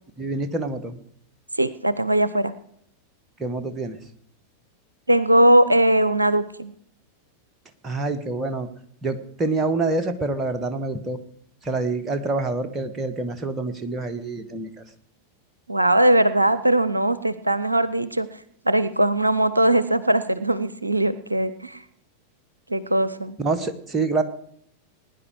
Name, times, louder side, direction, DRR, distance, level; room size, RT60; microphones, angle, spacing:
voice 1, 0.2-1.0 3.4-4.0 7.8-8.7 9.0-11.2 11.6-14.7 23.4-24.2, right 3 dB, 20° right, 7 dB, 1.3 m, -26 dB
voice 2, 1.6-2.5 5.1-6.7 15.7-18.3 18.7-21.8 22.7-23.4, right 1 dB, 85° right, 15 dB, 0.5 m, -20 dB
20.0 x 10.0 x 4.7 m, 0.67 s
figure-of-eight pair, 90°, 0 cm